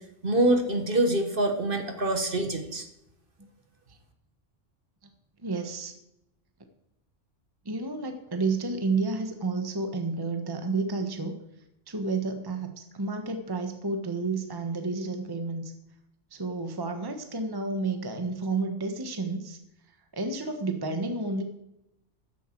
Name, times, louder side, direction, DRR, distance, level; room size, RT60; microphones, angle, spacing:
voice 1, 0.2-2.8, right 1 dB, 45° right, 5 dB, 1.6 m, -25 dB
voice 2, 5.4-5.9 7.6-11.4 11.9-15.7 16.3-19.6 19.9-21.4, right 3 dB, 20° right, 6 dB, 1.1 m, -31 dB
14.0 x 10.0 x 4.5 m, 0.84 s
omnidirectional pair, 1.3 m